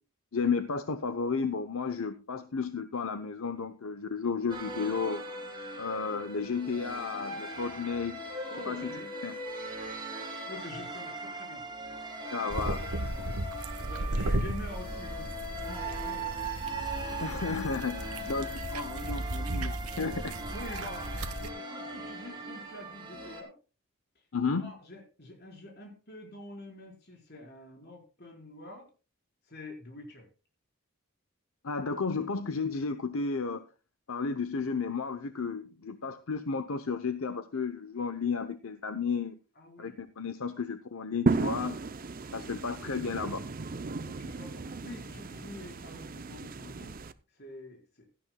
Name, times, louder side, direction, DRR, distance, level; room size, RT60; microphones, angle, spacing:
voice 1, 0.3-5.3 5.8-8.2 8.7-9.0 9.2-9.3 12.3-12.9 17.2-20.4 24.3-24.7 31.6-33.6 34.1-39.3 39.8-41.8 42.3-43.4, left 5 dB, 70° left, 9 dB, 0.8 m, -33 dB
sound 1, 4.5-23.4, right 1 dB, 20° right, 3.1 m, -40 dB
voice 2, 8.5-9.1 10.5-11.6 13.1-13.4 13.8-16.3 20.5-23.5 24.5-28.9 29.5-30.3 39.6-40.0 42.4-42.6 44.0-46.9 47.3-48.1, left 1 dB, 45° left, 1 dB, 4.6 m, -46 dB
sound 2, 12.5-21.5, right 1 dB, 85° right, 1.2 m, -35 dB
sound 3, 41.3-47.1, right 3 dB, 40° right, 0.6 m, -34 dB
16.5 x 13.0 x 2.3 m, 0.33 s
head